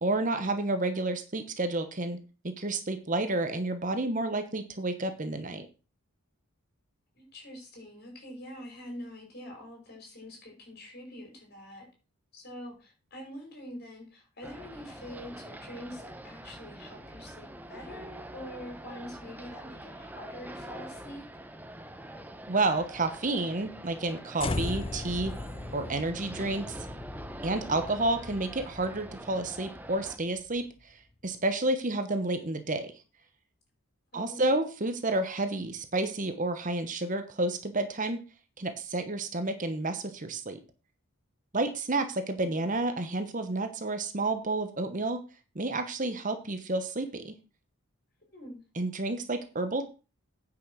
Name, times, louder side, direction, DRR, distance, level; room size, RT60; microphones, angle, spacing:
voice 1, 0.0-2.2 2.4-5.7 22.5-25.4 25.7-26.8 27.4-32.9 34.1-38.2 38.6-40.6 41.5-45.2 45.5-47.4 48.8-49.9, right 2 dB, 35° right, 9 dB, 1.0 m, -30 dB
voice 2, 7.1-11.9 12.3-21.3 34.1-34.5 48.2-48.6, left 1 dB, 45° left, 1 dB, 5.1 m, -45 dB
sound 1, 14.4-30.2, right 1 dB, 10° right, 0.8 m, -45 dB
sound 2, 24.4-30.7, left 2 dB, 25° left, 0.5 m, -38 dB
9.4 x 6.1 x 6.2 m, 0.33 s
head